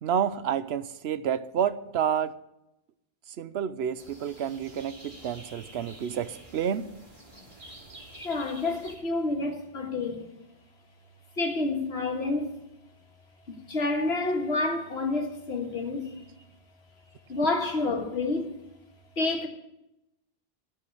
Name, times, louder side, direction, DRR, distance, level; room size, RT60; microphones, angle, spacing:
voice 1, 0.0-2.3 3.4-6.9, right 8 dB, 85° right, 0.9 m, -29 dB
sound 1, 3.9-8.9, right 1 dB, 50° right, 2.6 m, -49 dB
voice 2, 8.1-10.3 11.4-12.5 13.5-16.3 17.3-18.6 19.2-19.5, left 2 dB, 90° left, 2.0 m, -29 dB
13.0 x 7.1 x 7.7 m
omnidirectional pair, 1.0 m